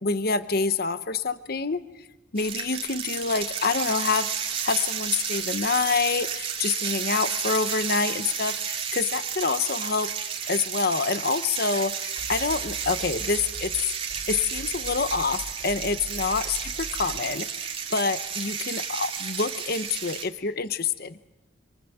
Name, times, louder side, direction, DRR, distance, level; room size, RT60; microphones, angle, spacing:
voice 1, 0.0-1.8 2.3-10.1 10.5-13.7 14.3-21.2, left 4 dB, 50° left, 12 dB, 0.9 m, -27 dB
sound 1, 2.4-20.2, right 7 dB, 30° right, 2.6 m, -32 dB
sound 2, 12.2-13.8 14.1-17.2, equal, 60° right, 3.4 m, -42 dB
27.0 x 26.5 x 7.9 m, 1.0 s
head